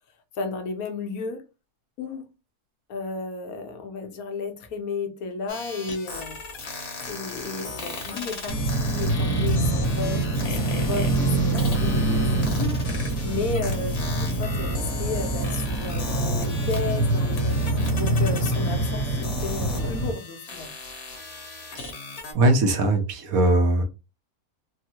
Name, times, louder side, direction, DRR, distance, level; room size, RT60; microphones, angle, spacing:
voice 1, 0.3-1.4 2.0-2.3 2.9-6.4 7.1-20.7, left 4 dB, 75° left, 1.1 m, -33 dB
sound 1, 5.5-22.3, left 3 dB, 50° left, 1.0 m, -37 dB
sound 2, 8.5-20.1, right 2 dB, 15° left, 0.6 m, -25 dB
voice 2, 22.3-23.8, right 2 dB, 70° right, 1.2 m, -20 dB
3.5 x 2.1 x 2.8 m
omnidirectional pair, 1.6 m